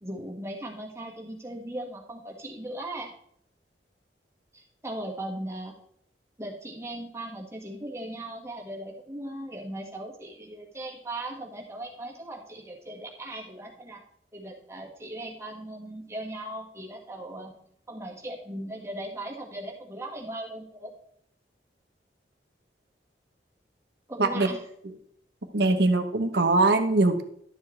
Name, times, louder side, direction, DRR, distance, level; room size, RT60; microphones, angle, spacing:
voice 1, 0.0-3.1 4.5-5.7 6.4-14.0 14.3-17.5 17.9-20.9 24.1-24.6, right 1 dB, 15° right, -1 dB, 1.7 m, -38 dB
voice 2, 24.2-24.5 25.5-27.2, right 2 dB, 70° right, 7 dB, 1.1 m, -22 dB
12.0 x 7.0 x 3.3 m, 0.66 s
head